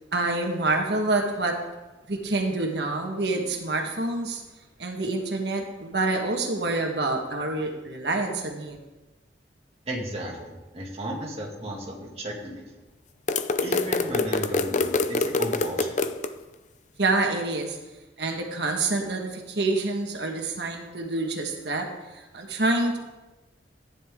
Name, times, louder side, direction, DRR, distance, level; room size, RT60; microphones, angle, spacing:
voice 1, 0.1-1.6 2.1-4.4 4.8-8.8 17.0-17.8 18.2-23.0, right 2 dB, 70° right, 2 dB, 1.5 m, -27 dB
voice 2, 9.9-12.7 13.6-16.1, right 1 dB, 35° right, -2 dB, 2.3 m, -34 dB
sound 1, 13.3-16.3, left 3 dB, 45° left, 0.6 m, -25 dB
14.5 x 10.0 x 3.7 m, 1.1 s
head